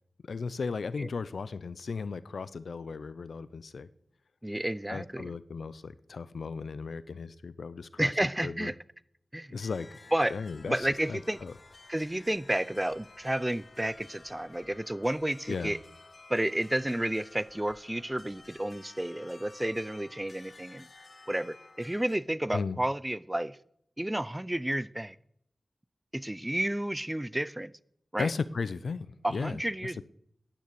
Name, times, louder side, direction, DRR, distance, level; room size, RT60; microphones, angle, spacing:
voice 1, 0.3-3.9 4.9-8.1 8.4-8.7 9.5-9.9 10.3-11.5 15.5-15.7 22.5-22.8 28.2-30.0, left 4 dB, 90° left, 16 dB, 0.6 m, -36 dB
voice 2, 4.4-5.3 8.0-8.8 9.3-9.5 10.1-10.3 10.7-11.4 11.9-15.8 16.3-20.9 21.3-23.6 24.0-25.2 26.1-27.7 28.1-28.3 29.2-30.0, right 1 dB, 15° right, 18 dB, 0.4 m, -31 dB
sound 1, 9.6-22.2, left 3 dB, 45° left, 0.7 m, -53 dB
10.0 x 9.4 x 8.3 m, 0.71 s
wide cardioid pair, 95°, 0 cm